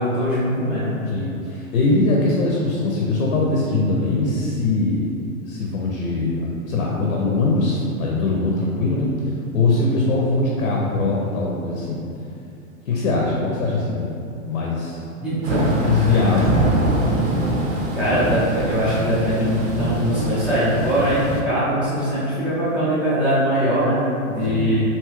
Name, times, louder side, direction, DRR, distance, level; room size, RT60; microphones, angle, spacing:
voice 1, 0.0-1.0 15.2-16.1 18.0-24.8, equal, 5° right, -14 dB, 0.3 m, -21 dB
voice 2, 1.1-5.1 5.4-9.1 9.5-12.0 12.8-14.1 14.4-15.0 15.8-16.7 24.4-24.8, left 3 dB, 80° left, -2 dB, 0.6 m, -21 dB
Thunder / Rain, 15.4-21.4, right 1 dB, 70° right, 0.7 m, -23 dB
2.8 x 2.3 x 3.0 m, 2.6 s
hypercardioid pair, 130°, 42 cm